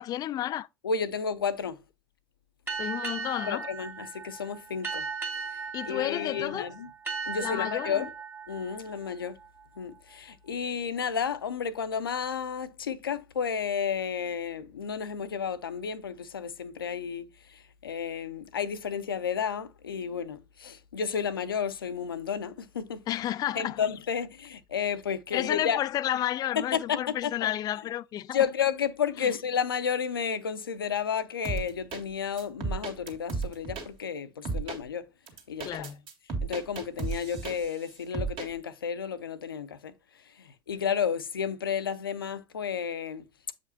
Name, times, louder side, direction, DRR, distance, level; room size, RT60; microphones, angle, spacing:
voice 1, 0.0-0.7 2.8-3.7 5.7-6.7 7.4-8.1 23.1-23.8 25.3-28.4 29.2-29.3 35.6-36.0, left 12 dB, 35° left, 0.3 m, -31 dB
voice 2, 0.8-1.8 3.5-5.1 5.5-6.9 7.3-8.1 8.5-9.4 9.8-23.0 23.5-25.8 26.6-27.3 28.3-35.0 35.5-35.9 36.4-39.9 40.2-43.3, left 7 dB, 80° left, 0.6 m, -32 dB
sound 1, 2.7-10.0, right 5 dB, 20° right, 1.9 m, -37 dB
sound 2, 31.4-32.0 32.4-33.9 34.5-34.8 35.3-37.8 38.1-38.5, right 4 dB, 45° right, 2.0 m, -33 dB
7.8 x 5.0 x 2.6 m
figure-of-eight pair, 70°, 12 cm